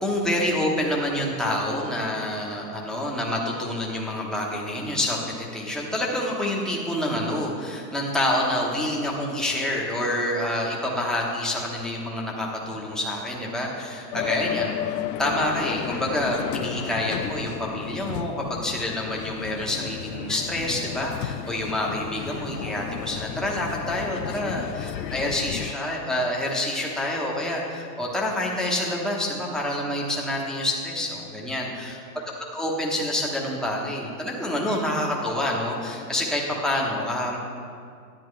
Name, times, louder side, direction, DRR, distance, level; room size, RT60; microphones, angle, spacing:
voice 1, 0.0-32.0 32.5-37.4, left 1 dB, ahead, -3 dB, 1.0 m, -27 dB
sound 1, 14.1-25.7, left 11 dB, 75° left, 0.6 m, -33 dB
10.5 x 10.5 x 3.2 m, 2.3 s
hypercardioid pair, 130°, 50 cm